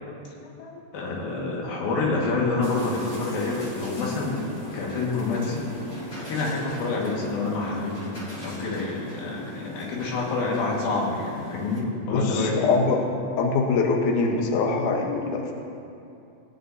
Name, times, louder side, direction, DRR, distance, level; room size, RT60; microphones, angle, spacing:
voice 1, 0.9-4.5 4.7-5.6 6.2-8.1 8.4-12.7, left 3 dB, 65° left, -3 dB, 3.3 m, -27 dB
sound 1, 2.6-11.8, left 1 dB, 45° left, 0.9 m, -38 dB
voice 2, 12.1-13.0 13.4-15.5, left 4 dB, 80° left, 1 dB, 1.8 m, -23 dB
20.0 x 9.9 x 2.7 m, 2.6 s
omnidirectional pair, 5.0 m